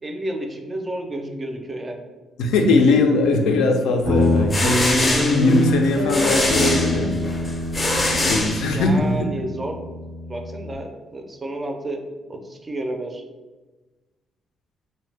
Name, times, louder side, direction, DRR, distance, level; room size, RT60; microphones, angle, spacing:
voice 1, 0.0-2.0 8.6-9.9 10.3-13.2, right 1 dB, 25° right, 3 dB, 0.4 m, -31 dB
voice 2, 2.4-7.2 8.2-9.3, left 3 dB, 85° left, 3 dB, 0.3 m, -20 dB
Guitar, 4.0-10.7, left 1 dB, 90° right, 0.8 m, -25 dB
sound 1, 4.2-9.1, left 2 dB, 30° left, 0.5 m, -24 dB
2.5 x 2.0 x 3.3 m, 1.2 s
cardioid pair, 90°, 0 cm